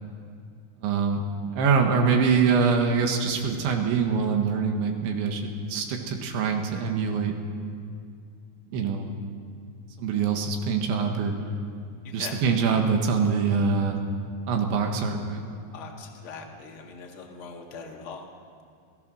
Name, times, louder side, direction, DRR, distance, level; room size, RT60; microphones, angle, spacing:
voice 1, 0.8-7.3 8.7-9.1 10.0-11.3 12.1-14.0 14.5-15.4, right 5 dB, 80° right, 3 dB, 3.9 m, -24 dB
voice 2, 12.0-12.4 15.7-18.2, left 5 dB, 45° left, 1 dB, 1.8 m, -41 dB
28.0 x 18.0 x 6.4 m, 2.3 s
omnidirectional pair, 5.3 m